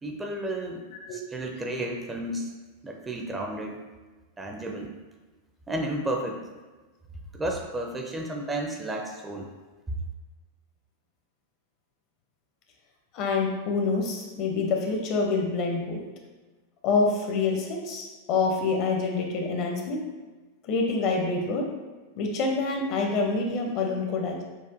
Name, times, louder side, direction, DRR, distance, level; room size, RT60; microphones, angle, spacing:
voice 1, 0.0-0.8 1.1-2.5 2.8-3.8 4.4-4.9 5.7-6.4 7.3-9.5, right 1 dB, 15° right, 2 dB, 0.5 m, -32 dB
voice 2, 13.1-16.0 16.8-20.0 20.6-21.6 22.2-24.4, left 3 dB, 40° left, 1 dB, 0.7 m, -26 dB
6.6 x 2.5 x 2.6 m, 1.3 s
figure-of-eight pair, 90°, 0 cm